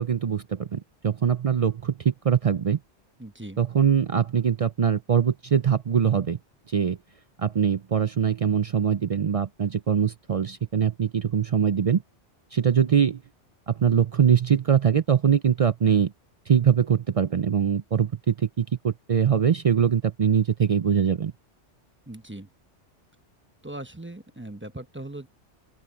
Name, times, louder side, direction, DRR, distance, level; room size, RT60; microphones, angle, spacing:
voice 1, 0.0-2.8 3.6-6.4 6.7-7.0 7.4-12.0 12.5-13.2 13.7-16.1 16.5-21.3, right 7 dB, 50° right, 0.4 m, -22 dB
voice 2, 3.2-3.6 22.1-22.5 23.6-25.3, right 1 dB, 10° right, 0.9 m, -39 dB
open air
omnidirectional pair, 1.2 m